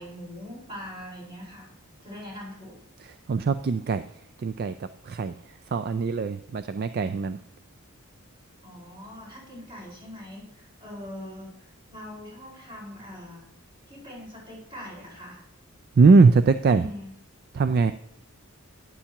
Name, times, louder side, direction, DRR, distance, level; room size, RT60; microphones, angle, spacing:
voice 1, 0.0-1.7 2.0-2.8 8.6-13.5 13.9-15.4 16.6-17.1, left 1 dB, 25° right, -5 dB, 4.9 m, -42 dB
voice 2, 3.3-4.0 4.4-4.7 5.1-5.3 5.7-7.4 16.0-16.8 17.5-17.9, right 4 dB, 45° right, 12 dB, 0.3 m, -20 dB
11.5 x 9.9 x 2.9 m, 0.70 s
head